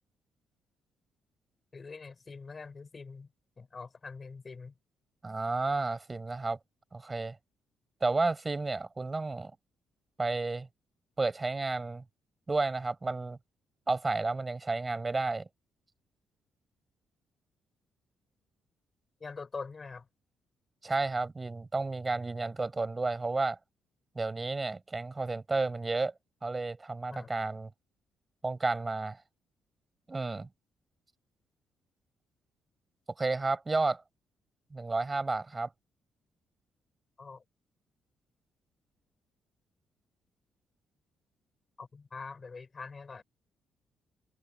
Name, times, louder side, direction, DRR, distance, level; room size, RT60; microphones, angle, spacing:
voice 1, 1.7-3.3 3.6-4.7 19.2-20.1 27.1-27.3 37.2-37.4 41.8-43.2, left 4 dB, 35° left, 4.2 m, -44 dB
voice 2, 5.2-6.6 6.9-7.4 8.0-9.5 10.2-10.7 11.2-12.0 12.5-13.4 13.9-15.5 20.8-23.6 24.1-26.1 26.4-27.7 28.4-29.2 30.1-30.5 33.2-34.0 34.7-35.7, right 3 dB, 25° right, 6.4 m, -31 dB
cardioid pair, 90°, 0 cm